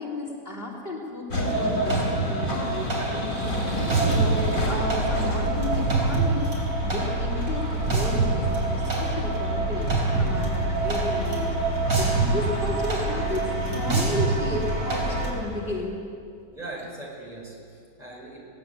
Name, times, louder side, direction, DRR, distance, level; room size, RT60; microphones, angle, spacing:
voice 1, 0.0-3.7 4.0-6.5 6.8-11.6 11.9-16.0, left 1 dB, 35° left, -1 dB, 2.9 m, -33 dB
sound 1, 1.3-15.8, equal, 60° left, 4.7 m, -32 dB
sound 2, 1.5-15.3, right 2 dB, 85° right, 4.2 m, -26 dB
voice 2, 16.5-18.4, right 2 dB, 25° right, -3 dB, 5.6 m, -39 dB
20.5 x 17.5 x 8.5 m, 2.3 s
omnidirectional pair, 1.6 m